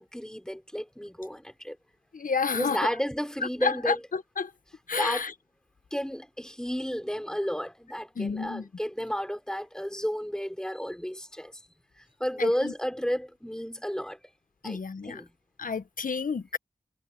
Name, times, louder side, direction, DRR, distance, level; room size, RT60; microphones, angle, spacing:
voice 1, 0.0-1.8 2.5-4.0 5.0-5.2 5.9-11.5 12.0-14.2 14.6-15.3, equal, 5° left, 5.7 m, -32 dB
voice 2, 2.1-2.9 3.6-4.5 4.9-5.3 8.1-8.7 12.4-12.7 14.6-15.2 15.6-16.6, left 5 dB, 65° left, 1.3 m, -30 dB
cardioid pair, 45°, 15 cm